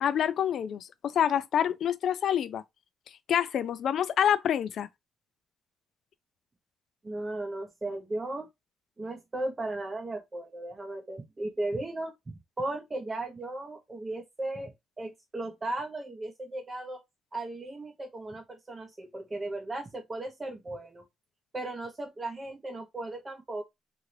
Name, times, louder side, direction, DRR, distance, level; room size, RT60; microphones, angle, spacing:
voice 1, 0.0-2.6 3.3-4.9, left 9 dB, 65° left, 0.4 m, -27 dB
voice 2, 7.0-8.5 9.0-12.1 12.6-17.0 17.3-21.0 21.5-23.6, right 2 dB, 25° right, 0.6 m, -36 dB
2.8 x 2.6 x 3.1 m
cardioid pair, 90°, 0 cm